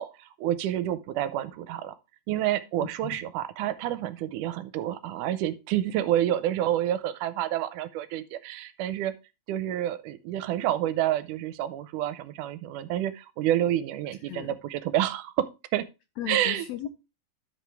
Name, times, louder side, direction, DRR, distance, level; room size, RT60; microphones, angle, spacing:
voice 1, 0.0-2.0 2.3-9.1 9.5-15.9 16.3-16.7, right 12 dB, 85° right, 2.1 m, -29 dB
voice 2, 2.8-3.2 14.3-14.6 16.2-16.9, left 12 dB, 80° left, 1.6 m, -36 dB
12.5 x 5.1 x 3.4 m
omnidirectional pair, 3.7 m